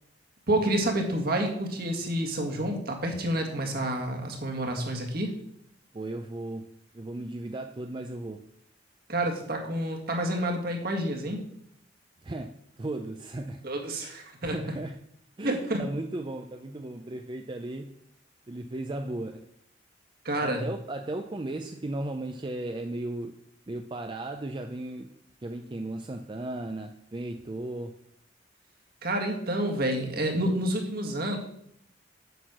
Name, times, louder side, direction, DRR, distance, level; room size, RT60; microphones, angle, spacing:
voice 1, 0.5-5.3 9.1-11.4 13.6-14.6 15.4-15.8 20.3-20.6 29.0-31.4, right 1 dB, 55° right, 2.0 m, -29 dB
voice 2, 5.9-8.5 12.2-13.7 14.0-15.0 15.4-17.9 18.5-19.5 20.4-23.4 23.7-25.1 25.4-28.0, right 2 dB, 25° right, 0.5 m, -36 dB
8.0 x 6.3 x 6.2 m
head